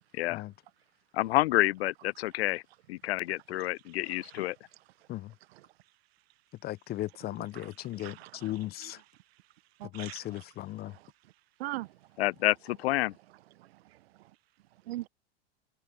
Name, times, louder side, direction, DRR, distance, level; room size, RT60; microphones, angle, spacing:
voice 1, 1.1-2.6 2.9-4.6 12.2-13.1, left 17 dB, 75° left, 0.5 m, -28 dB
voice 2, 4.0-4.4 5.5-5.7 7.4-7.7 8.0-8.5 8.8-8.9 9.8-10.4 10.8-11.1 11.6-12.0 13.6-14.3 14.9-15.1, right 16 dB, 70° right, 0.7 m, -42 dB
voice 3, 6.6-9.0 9.9-11.0, left 15 dB, 30° left, 0.6 m, -37 dB
hypercardioid pair, 100°, 32 cm